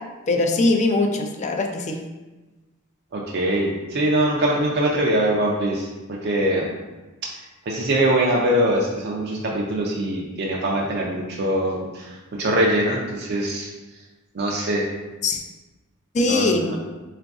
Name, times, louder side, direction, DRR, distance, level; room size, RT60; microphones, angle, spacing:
voice 1, 0.3-2.0 15.2-15.4 16.1-16.6, left 2 dB, 35° left, 3 dB, 0.4 m, -21 dB
voice 2, 3.1-5.8 6.1-6.7 7.7-11.8 12.4-13.7 14.4-14.8 16.3-16.8, right 1 dB, 50° right, -2 dB, 0.4 m, -22 dB
3.8 x 2.5 x 3.5 m, 1.2 s
head